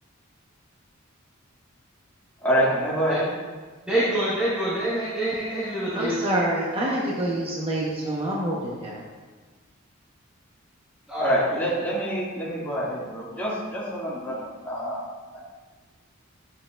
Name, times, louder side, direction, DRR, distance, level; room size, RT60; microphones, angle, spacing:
voice 1, 2.4-3.3 11.2-15.0 15.3-15.4, equal, 10° left, -8 dB, 2.2 m, -26 dB
voice 2, 3.9-6.1 11.1-11.6, right 1 dB, 5° right, -10 dB, 1.5 m, -26 dB
voice 3, 5.9-9.0, right 1 dB, 30° right, -5 dB, 1.1 m, -26 dB
10.5 x 7.4 x 2.5 m, 1.4 s
head